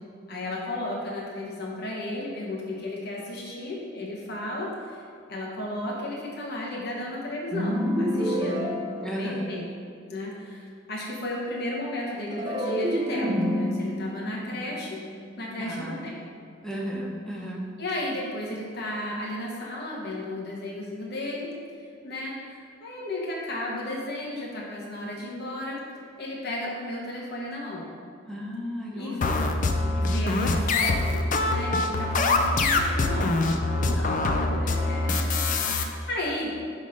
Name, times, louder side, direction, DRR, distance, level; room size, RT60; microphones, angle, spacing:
voice 1, 0.3-5.0 5.3-8.7 9.2-9.6 10.1-15.0 15.4-16.2 17.8-21.5 22.0-25.8 26.2-27.9 28.9-29.2 30.0-36.5, left 1 dB, 60° left, -3 dB, 1.1 m, -34 dB
sound 1, 7.5-9.9 12.3-15.6, equal, 25° right, 0.6 m, -29 dB
voice 2, 9.0-9.4 15.6-16.1 16.6-17.6 28.3-29.4 30.1-30.4, equal, 5° left, -4 dB, 0.9 m, -34 dB
sound 2, 29.2-35.8, left 3 dB, 45° left, 0.4 m, -24 dB
5.4 x 3.9 x 5.0 m, 2.3 s
head